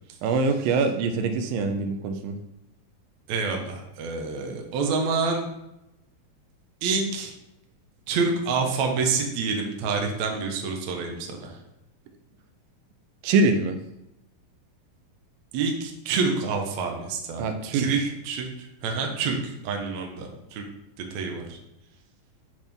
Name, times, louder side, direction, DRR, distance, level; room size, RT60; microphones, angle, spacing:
voice 1, 0.2-2.4 13.2-13.8 17.4-18.1, right 3 dB, 85° right, 7 dB, 2.4 m, -24 dB
voice 2, 3.3-5.5 6.8-7.3 8.1-11.6 15.5-20.6 21.1-21.6, right 4 dB, 70° right, 2 dB, 1.9 m, -27 dB
10.5 x 3.6 x 3.5 m, 0.88 s
omnidirectional pair, 4.0 m